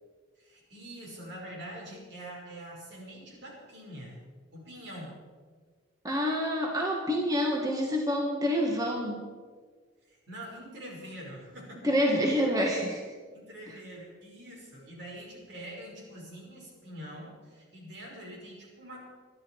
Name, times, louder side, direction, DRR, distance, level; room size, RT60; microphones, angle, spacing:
voice 1, 0.4-4.2 4.5-5.2 10.1-11.9 13.3-19.1, right 1 dB, 65° right, -2 dB, 5.5 m, -45 dB
voice 2, 6.0-9.2 11.8-13.0 13.7-13.8, equal, 20° right, 0 dB, 1.7 m, -27 dB
22.0 x 12.5 x 4.7 m, 1.5 s
head